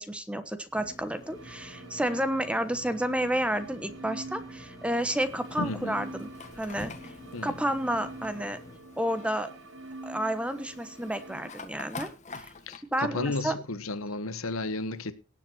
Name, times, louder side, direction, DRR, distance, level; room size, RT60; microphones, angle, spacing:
voice 1, 0.0-6.3 6.6-6.9 7.4-8.6 9.0-9.5 10.0-12.1 12.4-12.5 12.9-13.6, right 1 dB, 5° right, 1.2 m, -30 dB
sound 1, 0.8-8.8, left 1 dB, 20° left, 1.4 m, -50 dB
sound 2, 1.2-11.5, right 2 dB, 65° right, 1.5 m, -45 dB
Fire, 4.9-12.8, left 3 dB, 35° left, 1.7 m, -47 dB
voice 2, 5.6-6.0 7.3-7.5 12.7-15.1, left 2 dB, 90° left, 1.2 m, -33 dB
18.5 x 7.5 x 4.4 m
head